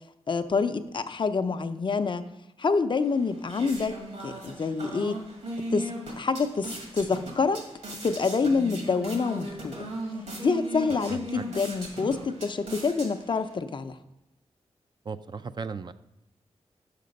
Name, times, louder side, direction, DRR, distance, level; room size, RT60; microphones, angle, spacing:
voice 1, 0.3-2.2 2.6-5.2 5.7-5.9 6.2-7.6 8.0-9.7 10.4-14.0, left 4 dB, 45° left, 10 dB, 0.5 m, -27 dB
sound 1, 3.0-13.5, right 1 dB, 75° right, 1.8 m, -38 dB
voice 2, 11.1-11.4 15.1-15.9, right 5 dB, 40° right, 11 dB, 0.3 m, -36 dB
6.6 x 5.8 x 5.2 m, 0.91 s
wide cardioid pair, 90°, 11 cm